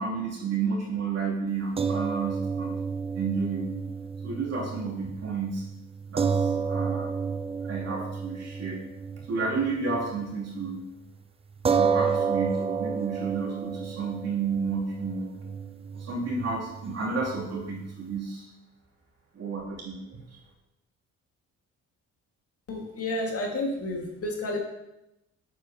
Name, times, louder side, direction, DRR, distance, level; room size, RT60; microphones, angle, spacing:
voice 1, 0.0-2.8 3.1-3.8 4.2-5.6 6.1-7.1 7.6-8.9 9.3-10.9 11.7-15.4 15.9-18.5 19.3-20.2, right 4 dB, 55° right, -4 dB, 2.8 m, -31 dB
sound 1, 1.8-10.3 10.6-10.8 11.6-18.2, right 6 dB, 20° right, 0.3 m, -31 dB
voice 2, 22.7-24.6, left 1 dB, 50° left, 0 dB, 1.9 m, -31 dB
8.0 x 7.6 x 2.9 m, 0.89 s
cardioid pair, 90°, 30 cm